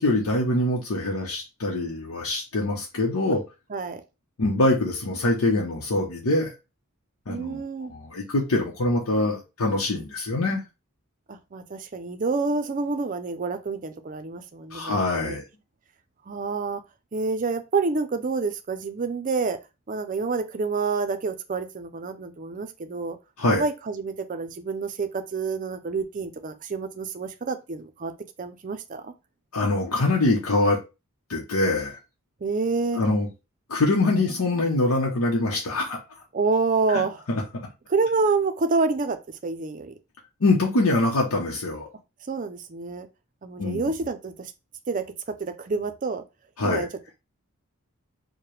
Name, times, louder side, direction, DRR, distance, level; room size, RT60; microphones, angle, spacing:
voice 1, 0.0-3.4 4.4-6.5 7.3-7.6 7.9-10.6 14.7-15.4 23.4-23.6 29.5-30.8 31.3-32.0 33.0-33.3 33.7-36.0 36.9-37.4 40.4-41.9 43.6-43.9 46.6-46.9, left 2 dB, 85° left, 0.8 m, -24 dB
voice 2, 3.7-4.0 7.3-7.9 11.3-15.4 16.3-16.8 17.1-19.6 19.9-23.2 23.5-28.1 28.4-29.1 32.4-33.0 36.3-37.2 37.9-39.9 42.3-43.1 43.4-44.5 44.9-46.2 46.6-46.9, right 4 dB, 35° right, 0.4 m, -28 dB
4.7 x 2.1 x 3.1 m
head